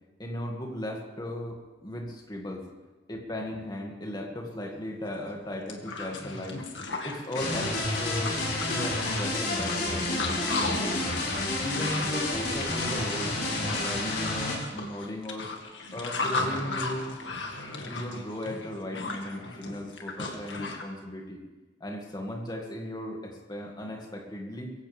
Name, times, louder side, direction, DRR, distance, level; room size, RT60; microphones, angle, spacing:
voice 1, 0.2-2.6 3.1-6.6 7.0-11.0 11.6-15.5 15.9-17.1 17.9-21.4 21.8-24.7, left 1 dB, 25° left, 1 dB, 2.2 m, -36 dB
sound 1, 5.1-5.2 5.5-20.8, left 3 dB, 85° left, 2.0 m, -36 dB
sound 2, 7.3-14.5, left 2 dB, 60° left, 5.5 m, -30 dB
22.0 x 16.0 x 3.5 m, 1.2 s
head